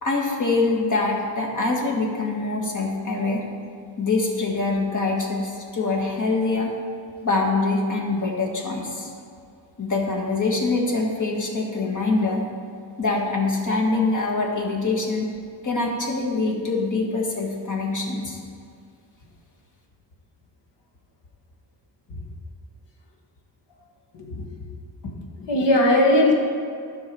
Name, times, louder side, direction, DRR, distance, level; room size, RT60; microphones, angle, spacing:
voice 1, 0.0-3.4 4.0-6.7 7.2-9.1 9.8-12.5 13.0-15.3 15.6-18.4, left 3 dB, 45° left, 0 dB, 1.5 m, -24 dB
voice 2, 24.1-24.7 25.0-26.3, left 1 dB, 75° left, 0 dB, 1.6 m, -20 dB
12.0 x 5.8 x 4.7 m, 2.3 s
wide cardioid pair, 130°, 43 cm